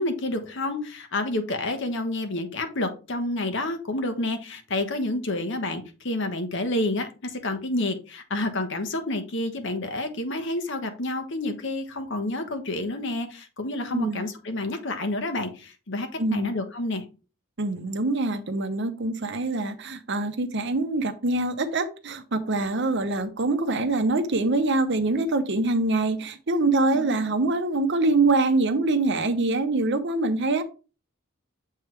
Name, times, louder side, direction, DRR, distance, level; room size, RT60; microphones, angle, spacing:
voice 1, 0.0-17.0 26.9-27.3, left 2 dB, 55° left, 1.1 m, -29 dB
voice 2, 13.9-14.2 16.2-16.5 17.6-30.6, right 2 dB, 55° right, 0.8 m, -24 dB
7.7 x 3.5 x 4.6 m
head